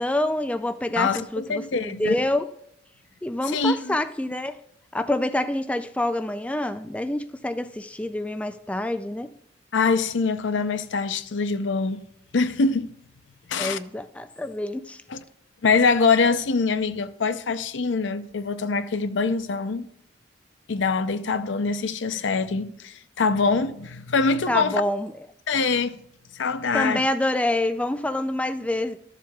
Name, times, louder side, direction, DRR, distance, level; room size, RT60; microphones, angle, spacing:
voice 1, 0.0-2.5 3.2-4.6 4.9-9.3 13.6-15.0 24.5-25.1 26.7-29.0, left 1 dB, 5° left, 0.3 m, -27 dB
voice 2, 1.0-2.2 3.4-4.0 9.7-12.0 12.3-12.9 13.5-13.8 15.1-15.2 15.6-19.9 20.7-24.8 25.5-26.0 26.3-27.1, left 4 dB, 80° left, 0.6 m, -24 dB
13.0 x 7.4 x 2.3 m
head